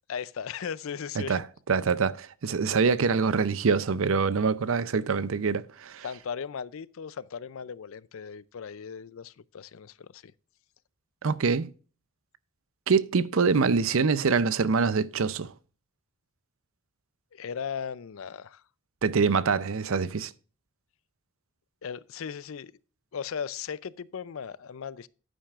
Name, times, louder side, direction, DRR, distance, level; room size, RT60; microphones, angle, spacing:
voice 1, 0.1-1.4 4.5-4.7 6.0-10.3 17.3-18.6 21.8-22.7 23.1-25.1, left 7 dB, 70° left, 0.4 m, -37 dB
voice 2, 1.2-6.0 11.2-11.7 12.9-15.5 19.0-20.3, right 5 dB, 65° right, 0.6 m, -25 dB
11.5 x 9.0 x 2.4 m
head